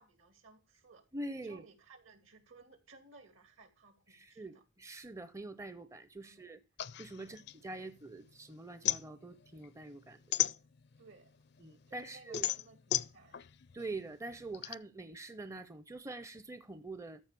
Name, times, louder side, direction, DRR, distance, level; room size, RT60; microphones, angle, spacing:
voice 1, 0.0-1.0 1.4-4.6 6.2-6.4 7.2-7.5 11.0-11.3 11.9-13.4, right 3 dB, 75° right, 2.5 m, -59 dB
voice 2, 1.1-1.6 4.1-6.6 7.0-10.2 11.6-12.5 13.7-17.2, right 2 dB, 15° right, 0.5 m, -45 dB
sound 1, 6.8-8.3 8.6-11.1 11.6-14.7, left 13 dB, 50° left, 0.4 m, -35 dB
13.5 x 4.9 x 6.8 m
head